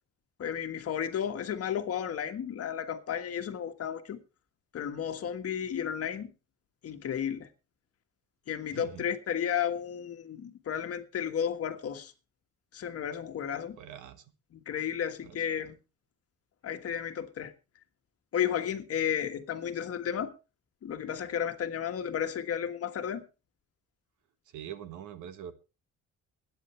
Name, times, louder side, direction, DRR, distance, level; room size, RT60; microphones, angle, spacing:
voice 1, 0.4-4.2 4.7-6.3 6.8-7.5 8.5-12.1 12.7-13.8 14.5-15.8 16.6-17.5 18.3-20.3 20.8-23.2, left 8 dB, 50° left, 1.5 m, -33 dB
voice 2, 8.7-9.1 13.8-14.2 15.2-15.4 24.5-25.5, right 10 dB, 80° right, 1.4 m, -43 dB
22.0 x 9.3 x 3.2 m
cardioid pair, 130°, 30 cm